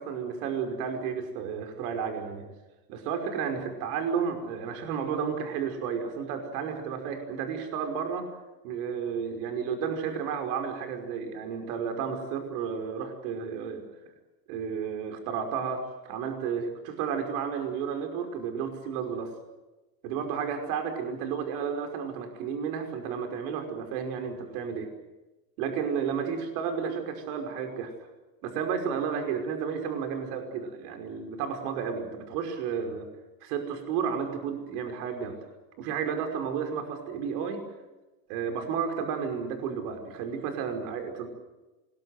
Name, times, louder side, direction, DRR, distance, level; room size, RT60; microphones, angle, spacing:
voice 1, 0.0-2.4 2.9-8.3 8.6-13.8 14.5-19.3 20.0-24.9 25.6-27.9 28.4-33.1 33.4-35.4 35.8-37.6 38.3-41.3, right 6 dB, 70° right, 5 dB, 5.6 m, -32 dB
27.0 x 21.0 x 8.1 m, 1.1 s
supercardioid pair, 110°, 48 cm